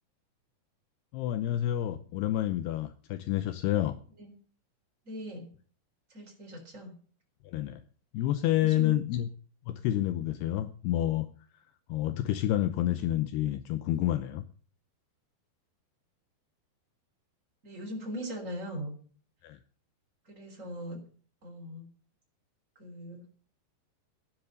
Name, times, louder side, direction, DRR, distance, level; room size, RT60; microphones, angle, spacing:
voice 1, 1.1-4.0 7.5-7.8 8.1-9.3 9.7-11.3 11.9-14.4 19.4-19.6, left 13 dB, 80° left, 11 dB, 2.6 m, -29 dB
voice 2, 5.0-5.5 6.1-6.9 8.6-8.9 17.6-19.0 20.3-21.0 21.4-21.9 22.8-23.2, equal, 20° right, 2 dB, 4.0 m, -40 dB
12.5 x 10.5 x 6.5 m, 0.43 s
omnidirectional pair, 5.1 m